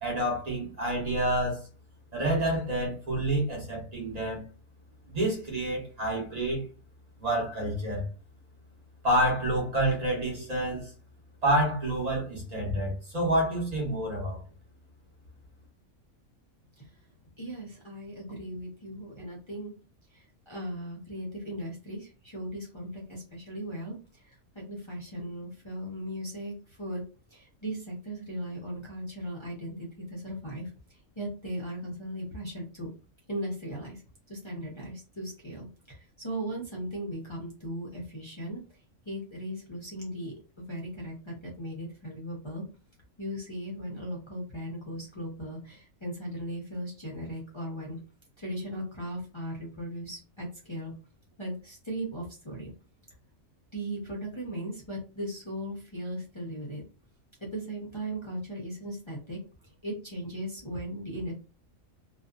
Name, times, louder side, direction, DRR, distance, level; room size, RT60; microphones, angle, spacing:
voice 1, 0.0-1.6 2.1-4.4 5.1-6.6 7.2-8.1 9.0-10.9 11.4-14.4, right 1 dB, 35° right, 1.0 m, -28 dB
voice 2, 17.4-19.7 20.1-27.0 27.3-32.9 33.3-34.0 34.3-38.6 39.1-42.7 43.2-48.0 48.4-50.9 51.4-52.7 53.7-56.8 57.4-61.3, equal, 35° left, 0.5 m, -38 dB
2.5 x 2.3 x 2.3 m
omnidirectional pair, 1.4 m